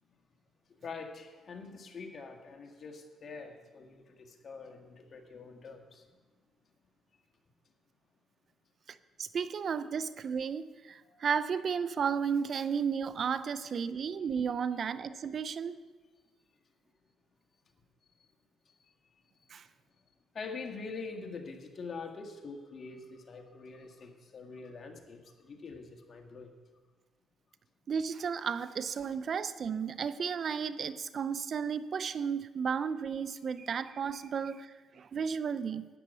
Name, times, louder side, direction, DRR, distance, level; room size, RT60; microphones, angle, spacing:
voice 1, 0.8-6.1 11.0-11.2 20.3-26.5, left 4 dB, 50° left, 3 dB, 1.8 m, -45 dB
voice 2, 8.9-15.8 19.5-19.7 27.9-35.9, right 6 dB, 50° right, 14 dB, 0.5 m, -33 dB
12.5 x 9.4 x 5.5 m, 1.3 s
cardioid pair, 90°, 0 cm